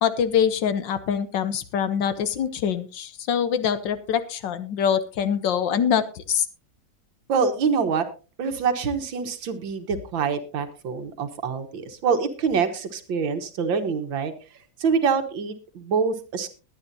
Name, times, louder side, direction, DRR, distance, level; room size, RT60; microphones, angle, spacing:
voice 1, 0.0-6.5, left 8 dB, 70° left, 13 dB, 1.6 m, -24 dB
voice 2, 7.3-8.1 8.4-14.3 14.8-16.5, right 5 dB, 80° right, 8 dB, 2.0 m, -25 dB
21.0 x 9.3 x 2.7 m, 0.34 s
omnidirectional pair, 2.1 m